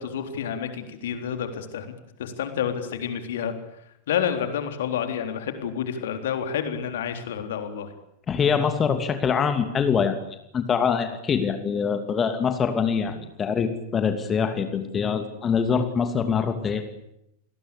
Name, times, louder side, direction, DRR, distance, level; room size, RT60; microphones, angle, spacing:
voice 1, 0.0-1.9 2.2-3.5 4.1-7.9, left 8 dB, 60° left, 7 dB, 3.7 m, -29 dB
voice 2, 8.3-10.2 10.5-16.8, left 6 dB, 20° left, 8 dB, 2.7 m, -24 dB
29.0 x 20.5 x 8.5 m, 0.80 s
figure-of-eight pair, 90°, 0 cm